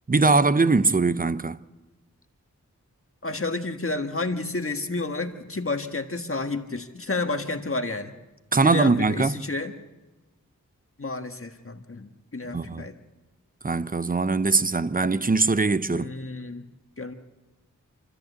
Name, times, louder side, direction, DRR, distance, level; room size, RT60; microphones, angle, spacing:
voice 1, 0.1-1.6 8.5-9.4 12.5-12.9 13.6-16.1, right 3 dB, 25° right, 0.7 m, -21 dB
voice 2, 3.2-8.1 8.6-9.7 11.0-13.0 15.9-16.6 17.0-17.1, left 3 dB, 40° left, 1.6 m, -30 dB
27.5 x 13.5 x 8.1 m
wide cardioid pair, 65°, 32 cm